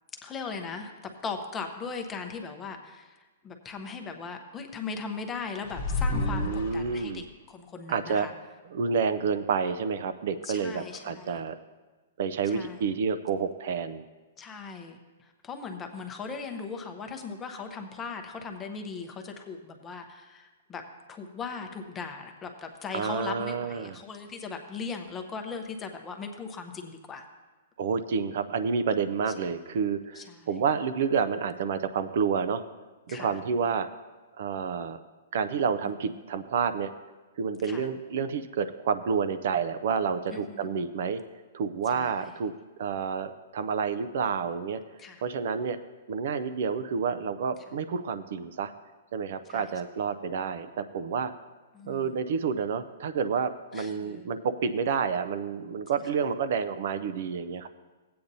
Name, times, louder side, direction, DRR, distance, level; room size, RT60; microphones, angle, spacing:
voice 1, 0.2-8.3 10.4-11.4 12.4-12.9 14.4-20.8 21.1-27.3 29.4-29.5 30.1-30.5 33.1-33.4 37.6-37.9 40.3-40.7 41.9-42.4 45.0-45.2 49.5-49.7 51.7-52.2 53.7-54.2, left 5 dB, 15° left, 4 dB, 0.7 m, -39 dB
sound 1, 5.6-7.3, left 3 dB, 45° left, 0.8 m, -30 dB
voice 2, 6.1-7.2 7.9-8.3 8.7-11.6 12.2-14.0 22.9-24.0 27.8-32.6 33.1-33.9 34.4-35.0 35.3-36.9 37.4-41.2 41.5-42.5 42.8-44.8 45.2-45.8 46.1-48.7 49.1-51.3 51.8-57.7, right 6 dB, 55° right, 11 dB, 0.4 m, -29 dB
16.0 x 8.5 x 2.7 m, 1.3 s
hypercardioid pair, 165°, 0 cm